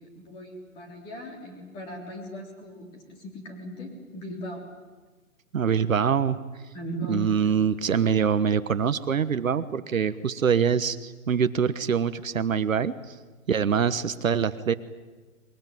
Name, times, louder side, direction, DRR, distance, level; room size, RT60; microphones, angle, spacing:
voice 1, 0.0-4.6 6.7-7.6, equal, 10° left, 1 dB, 3.3 m, -38 dB
voice 2, 5.5-6.4 7.1-13.1 13.5-14.7, right 7 dB, 65° right, 13 dB, 1.3 m, -24 dB
22.5 x 22.5 x 9.3 m, 1.3 s
hypercardioid pair, 170°, 43 cm